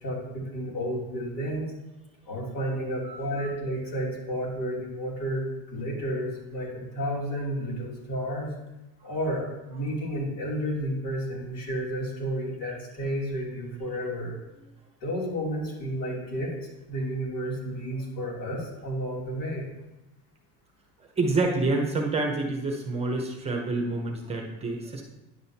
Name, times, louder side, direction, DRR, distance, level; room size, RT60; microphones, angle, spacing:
voice 1, 0.0-1.7 2.3-8.5 9.0-14.3 15.0-16.6 16.9-19.7, equal, 90° left, -3 dB, 3.0 m, -31 dB
voice 2, 3.0-3.5 21.2-25.0, right 3 dB, 15° right, 1 dB, 0.8 m, -28 dB
10.0 x 7.6 x 2.8 m, 0.96 s
cardioid pair, 170°, 38 cm